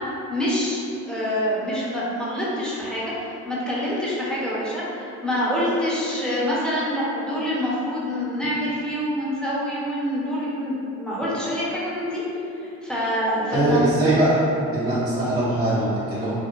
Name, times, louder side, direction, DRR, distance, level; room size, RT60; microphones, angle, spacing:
voice 1, 0.3-0.8 1.1-12.2 12.6-13.9, equal, 5° left, -8 dB, 0.8 m, -26 dB
voice 2, 13.5-14.4 14.7-16.3, right 1 dB, 25° right, -12 dB, 0.7 m, -21 dB
4.5 x 2.0 x 2.5 m, 2.8 s
cardioid pair, 90°, 30 cm